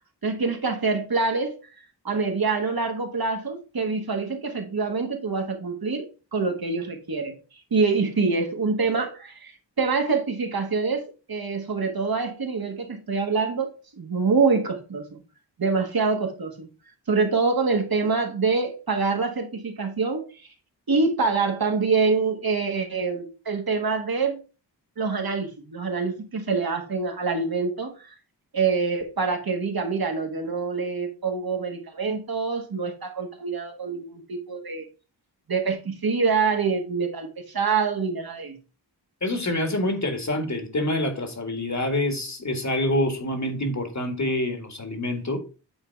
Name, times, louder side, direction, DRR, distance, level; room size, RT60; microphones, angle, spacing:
voice 1, 0.2-1.6 2.0-7.4 7.7-15.2 15.6-16.7 17.1-20.3 20.9-24.4 25.0-28.1 28.5-34.8 35.5-38.6, right 4 dB, 55° right, 1.6 m, -25 dB
voice 2, 39.2-45.4, left 1 dB, 40° left, 1.8 m, -26 dB
8.7 x 3.6 x 4.6 m
wide cardioid pair, 90°, 43 cm